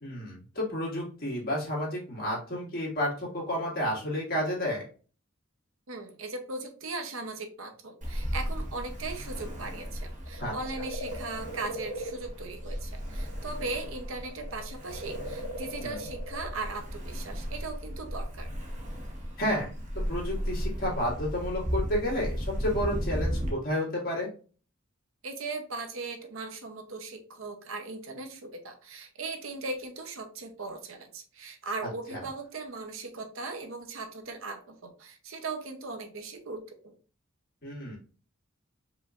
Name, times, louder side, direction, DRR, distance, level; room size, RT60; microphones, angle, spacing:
voice 1, 0.0-4.8 10.4-10.5 15.8-16.0 19.4-19.7 20.1-24.3 37.6-38.0, equal, 45° left, -4 dB, 2.0 m, -31 dB
voice 2, 5.9-18.5 25.2-36.9, right 3 dB, 70° right, 5 dB, 0.8 m, -38 dB
Ocean, 8.0-23.5, equal, 35° right, 0.9 m, -35 dB
sound 1, 10.2-13.8 14.1-16.7 17.7-17.8, equal, 70° left, 0.8 m, -40 dB
4.8 x 3.1 x 2.5 m, 0.38 s
head